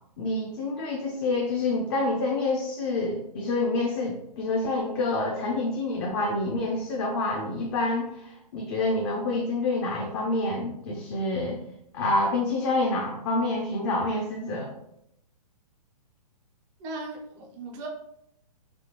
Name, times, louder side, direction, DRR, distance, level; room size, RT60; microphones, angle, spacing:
voice 1, 0.2-11.6 11.9-14.7, left 2 dB, 35° left, -1 dB, 0.5 m, -27 dB
voice 2, 16.8-17.9, right 2 dB, 15° right, 1 dB, 0.4 m, -37 dB
3.4 x 2.2 x 2.8 m, 0.75 s
hypercardioid pair, 150°, 21 cm